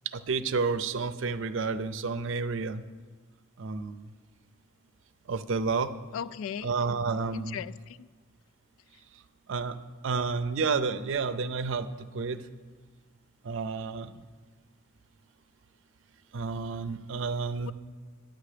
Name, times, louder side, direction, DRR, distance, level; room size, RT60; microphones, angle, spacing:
voice 1, 0.1-2.8 3.6-4.0 5.3-5.9 6.6-7.6 9.5-9.8 10.0-12.4 13.4-14.2 16.3-17.7, right 4 dB, 65° right, 12 dB, 0.5 m, -30 dB
voice 2, 6.1-6.7 7.3-8.1, left 8 dB, 75° left, 18 dB, 0.3 m, -37 dB
10.0 x 9.0 x 5.0 m, 1.4 s
head